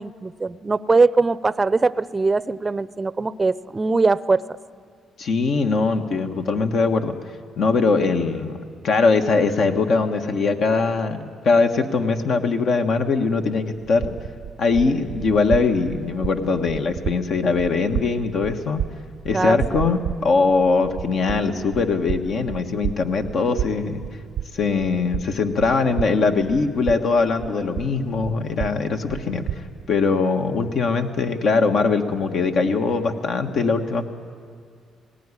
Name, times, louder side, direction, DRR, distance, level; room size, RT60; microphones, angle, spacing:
voice 1, 0.0-4.4 19.3-19.8, right 3 dB, 25° right, 17 dB, 0.6 m, -21 dB
voice 2, 5.2-7.1 7.6-8.6 8.8-14.2 14.6-18.8 19.2-24.0 24.5-29.4 29.9-34.1, left 4 dB, 65° left, 5 dB, 1.4 m, -21 dB
sound 1, 13.8-29.9, right 10 dB, 70° right, 0.5 m, -33 dB
18.5 x 18.0 x 9.8 m, 2.2 s
cardioid pair, 90°, 0 cm